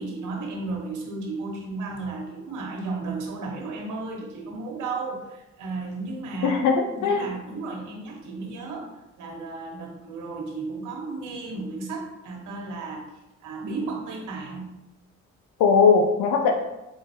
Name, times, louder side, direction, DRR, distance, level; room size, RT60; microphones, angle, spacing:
voice 1, 0.0-6.6 7.0-13.1 13.4-14.7, right 3 dB, 80° right, 1 dB, 1.0 m, -34 dB
voice 2, 6.4-7.3 15.6-16.5, left 5 dB, 85° left, 4 dB, 0.5 m, -19 dB
3.9 x 3.8 x 2.7 m, 0.92 s
cardioid pair, 90°, 30 cm